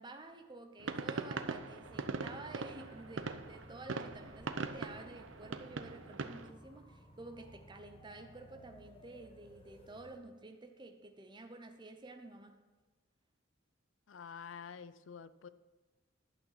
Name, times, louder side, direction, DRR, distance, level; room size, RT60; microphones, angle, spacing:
voice 1, 0.0-12.6, right 2 dB, 25° right, 5 dB, 0.8 m, -51 dB
sound 1, 0.8-6.5, right 4 dB, 70° right, 0.6 m, -41 dB
sound 2, 1.8-10.2, equal, 30° left, 1.2 m, -57 dB
voice 2, 14.1-15.5, left 6 dB, 70° left, 15 dB, 0.5 m, -48 dB
11.0 x 6.2 x 5.7 m, 1.2 s
head